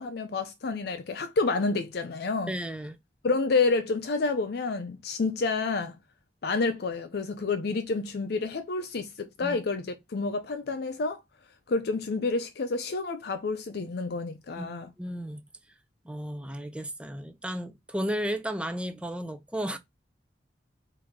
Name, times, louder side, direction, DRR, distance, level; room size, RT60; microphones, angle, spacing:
voice 1, 0.0-2.5 3.2-6.0 6.4-11.2 11.7-14.9, left 3 dB, 65° left, 0.5 m, -29 dB
voice 2, 2.5-3.0 9.4-9.6 14.6-15.4 16.0-19.8, equal, 5° right, 0.5 m, -34 dB
3.6 x 2.7 x 4.6 m
head